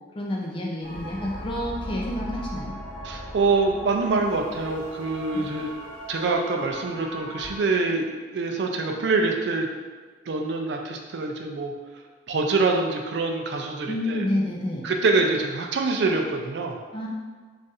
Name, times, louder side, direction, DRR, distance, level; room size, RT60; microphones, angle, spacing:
voice 1, 0.2-2.7 5.3-5.5 13.9-14.9 16.9-17.1, left 1 dB, 25° left, -2 dB, 0.4 m, -29 dB
sound 1, 0.8-7.6, equal, 45° left, 0.9 m, -38 dB
voice 2, 3.0-5.7 6.1-9.7 10.3-11.7 12.3-14.2 14.8-16.8, right 3 dB, 60° right, 2 dB, 0.3 m, -25 dB
2.5 x 2.4 x 4.0 m, 1.4 s
head